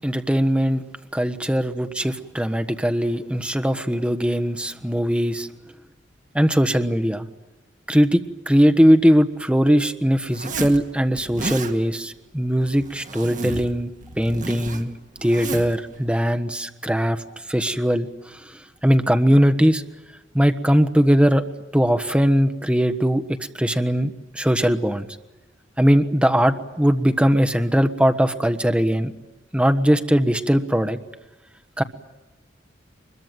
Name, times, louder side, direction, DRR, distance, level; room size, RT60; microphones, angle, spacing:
voice 1, 0.0-0.8 1.2-5.5 6.3-7.3 7.9-17.2 17.5-18.4 18.8-19.8 20.3-21.4 21.7-25.1 25.8-29.1 29.5-31.0 31.8-31.9, equal, 5° right, 8 dB, 1.3 m, -20 dB
Zipper (clothing), 10.3-10.8 11.2-11.7 12.6-13.7 14.0-15.8, right 2 dB, 45° right, 2.1 m, -32 dB
23.5 x 22.5 x 9.2 m, 1.1 s
head